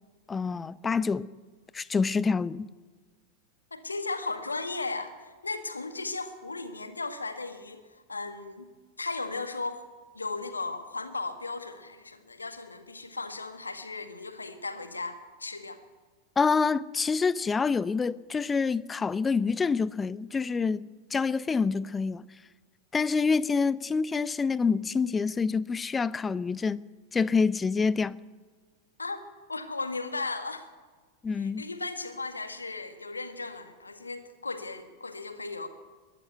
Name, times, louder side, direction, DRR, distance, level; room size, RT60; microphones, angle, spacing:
voice 1, 0.3-1.3 1.7-2.7 16.4-22.3 22.9-26.8 27.1-28.2 31.2-31.6, left 5 dB, 15° left, 0.6 m, -27 dB
voice 2, 3.7-8.7 9.0-9.9 10.1-15.8 29.0-29.2 29.5-30.7 31.3-35.7, left 3 dB, 80° left, 1.8 m, -36 dB
21.5 x 13.0 x 9.3 m
figure-of-eight pair, 90°, 0 cm